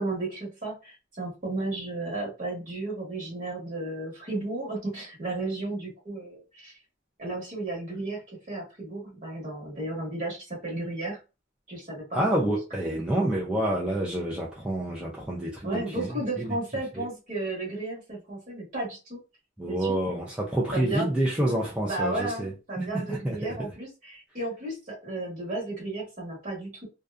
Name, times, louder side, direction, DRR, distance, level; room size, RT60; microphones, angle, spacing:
voice 1, 0.0-6.7 7.2-11.2 11.7-12.2 15.6-19.2 19.7-20.0 20.7-21.2 21.4-21.6 21.9-26.9, right 2 dB, 40° right, 1.1 m, -33 dB
voice 2, 12.1-16.6 17.0-17.1 19.6-23.7, right 1 dB, 5° right, 0.4 m, -28 dB
2.6 x 2.2 x 2.3 m
head